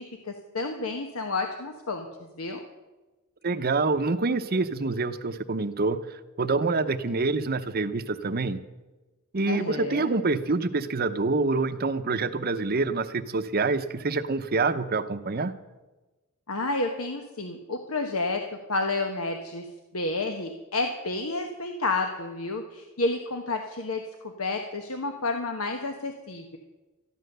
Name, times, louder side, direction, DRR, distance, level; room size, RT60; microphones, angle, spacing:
voice 1, 0.0-2.1 2.3-2.6 9.5-10.1 16.5-26.6, left 3 dB, 80° left, 4 dB, 1.2 m, -30 dB
voice 2, 3.4-6.0 6.4-8.6 9.3-15.5, right 3 dB, 45° right, 10 dB, 0.8 m, -26 dB
14.0 x 11.0 x 6.7 m, 1.1 s
head